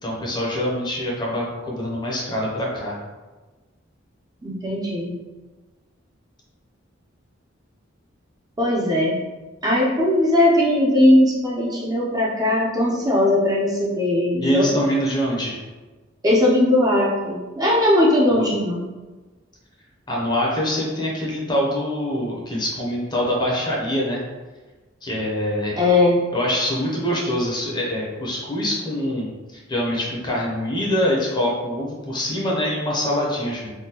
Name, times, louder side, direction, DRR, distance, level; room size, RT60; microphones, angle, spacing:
voice 1, 0.0-3.0 14.4-15.6 20.1-24.2 25.0-25.8 26.3-33.7, equal, 25° left, -3 dB, 0.6 m, -24 dB
voice 2, 4.4-5.1 8.6-9.2 9.6-14.7 16.2-18.8 25.8-26.2, left 1 dB, 20° right, -5 dB, 0.5 m, -19 dB
3.5 x 2.2 x 2.8 m, 1.2 s
head